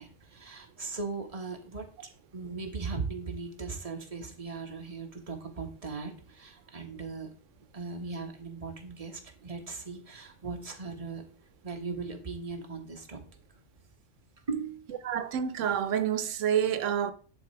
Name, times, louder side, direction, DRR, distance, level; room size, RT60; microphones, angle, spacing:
voice 1, 0.0-1.9 2.3-7.3 7.7-11.2 11.6-13.2 14.5-14.8, right 4 dB, 30° right, 1.4 m, -38 dB
voice 2, 15.0-17.1, right 9 dB, 90° right, 1.0 m, -28 dB
10.5 x 3.9 x 4.5 m
omnidirectional pair, 1.2 m